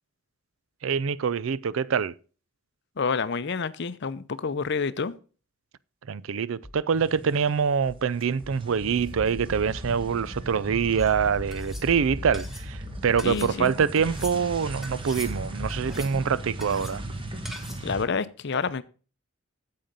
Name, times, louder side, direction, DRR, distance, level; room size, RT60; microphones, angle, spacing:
voice 1, 0.8-2.1 6.1-17.0, right 6 dB, 70° right, 0.4 m, -25 dB
voice 2, 3.0-5.2 13.2-13.7 17.8-18.8, left 5 dB, 55° left, 0.6 m, -28 dB
sound 1, 6.6-6.8 7.3-7.4 7.9-10.2 10.5-11.7 12.3-12.4, left 1 dB, 25° left, 2.4 m, -49 dB
sound 2, 6.9-7.7 8.0-18.0, equal, 25° right, 1.4 m, -37 dB
sound 3, 11.0-11.1 11.5-11.9 12.3-12.7 13.2-13.5 14.0-14.4 14.8-15.3 15.7-16.2 16.6-17.0 17.5-17.9, left 1 dB, ahead, 1.5 m, -42 dB
8.8 x 7.7 x 5.3 m
head